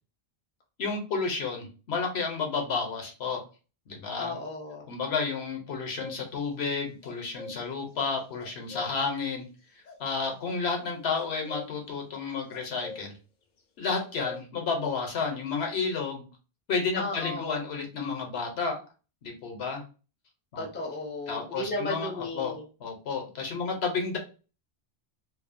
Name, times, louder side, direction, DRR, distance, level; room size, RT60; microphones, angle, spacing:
voice 1, 0.8-3.4 3.9-4.4 4.9-9.4 10.0-13.1 13.8-16.3 16.7-18.8 19.2-19.8 20.5-20.7 21.3-22.5 22.8-24.2, left 4 dB, 80° left, 2 dB, 1.0 m, -31 dB
voice 2, 4.2-4.9 17.0-17.6 20.6-22.6, left 2 dB, 15° left, -1 dB, 0.5 m, -34 dB
sound 1, 6.0-6.2 7.0-8.9 9.8-10.4 11.2-11.9 12.3-13.1 13.6-13.7 13.9-14.4, left 4 dB, 60° left, 0.6 m, -43 dB
2.7 x 2.0 x 2.5 m, 0.34 s
omnidirectional pair, 1.1 m